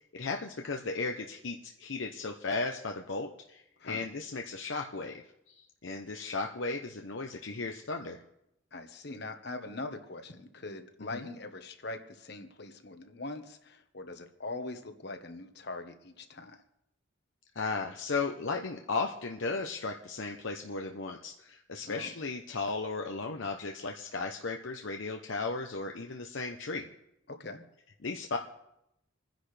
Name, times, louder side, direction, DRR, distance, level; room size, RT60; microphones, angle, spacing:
voice 1, 0.1-8.2 11.1-11.2 17.5-26.9 28.0-28.4, left 3 dB, 70° left, 3 dB, 0.8 m, -35 dB
voice 2, 8.7-16.6 21.8-22.1 27.3-27.6, left 2 dB, 55° left, 7 dB, 1.3 m, -42 dB
28.0 x 10.5 x 3.4 m, 0.84 s
head